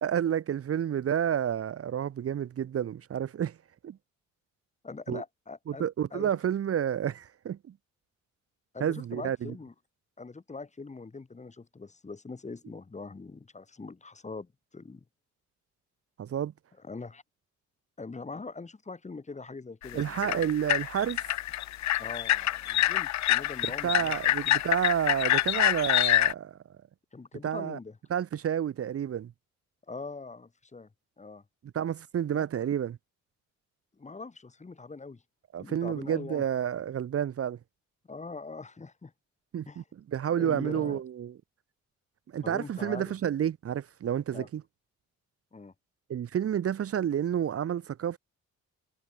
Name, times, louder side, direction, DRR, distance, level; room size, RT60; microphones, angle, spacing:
voice 1, 0.0-3.6 3.8-4.0 5.1-5.2 5.7-7.6 8.8-9.5 16.2-16.5 19.9-21.2 23.8-26.6 27.4-27.8 28.1-29.3 31.7-33.0 35.5-37.6 39.5-41.3 42.3-44.6 46.1-48.2, right 9 dB, 50° right, 1.1 m, -30 dB
voice 2, 4.8-6.4 8.7-9.7 10.2-15.0 16.8-17.2 18.0-20.5 22.0-24.2 27.1-28.0 29.9-30.9 31.2-31.4 32.3-32.4 34.0-35.2 35.6-36.4 38.1-39.1 39.7-39.8 40.3-41.0 42.4-43.2 44.3-44.5 45.5-45.7, left 3 dB, 25° left, 2.4 m, -42 dB
sound 1, 19.8-26.3, left 14 dB, 65° left, 0.7 m, -26 dB
cardioid pair, 90°, 30 cm